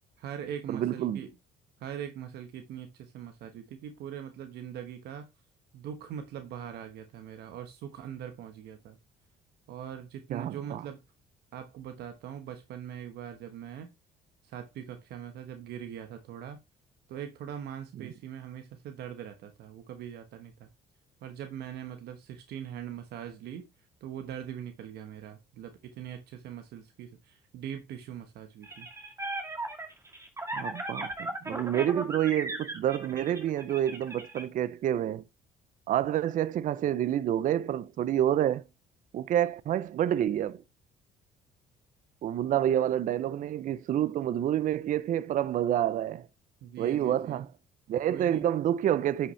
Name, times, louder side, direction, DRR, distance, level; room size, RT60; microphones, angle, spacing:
voice 1, 0.2-1.4 1.8-5.3 5.7-9.0 9.7-11.0 11.5-13.9 14.4-16.6 17.1-20.7 21.2-23.7 24.0-28.9 46.6-47.4 48.1-48.4, right 9 dB, 75° right, 1.1 m, -41 dB
voice 2, 0.7-1.2 10.3-10.8 18.0-18.1 30.5-35.2 35.9-38.6 39.1-40.6 42.2-46.3 46.8-47.5 47.9-49.3, right 11 dB, 50° right, 0.5 m, -28 dB
sound 1, 28.6-34.4, right 2 dB, 15° right, 2.0 m, -37 dB
9.8 x 5.7 x 3.1 m
cardioid pair, 110°, 17 cm